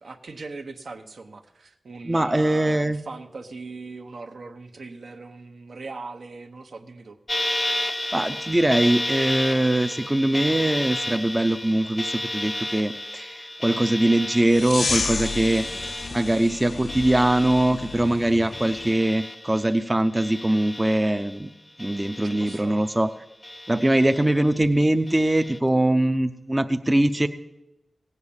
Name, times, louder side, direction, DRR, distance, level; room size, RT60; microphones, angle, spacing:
voice 1, 0.0-7.2 15.3-15.8 22.2-22.9 23.7-24.2, right 3 dB, 75° right, 6 dB, 1.0 m, -40 dB
voice 2, 2.0-3.0 7.9-15.6 16.1-21.5 21.8-23.1 23.7-27.3, right 1 dB, 15° right, 9 dB, 0.5 m, -22 dB
sound 1, 7.3-19.9 20.2-21.4 21.8-23.0 23.4-24.5 25.1-25.6, left 1 dB, 20° left, 0.7 m, -32 dB
sound 2, 14.5-18.9, left 4 dB, 60° left, 0.5 m, -31 dB
17.0 x 8.2 x 7.1 m, 0.94 s
wide cardioid pair, 100°, 0 cm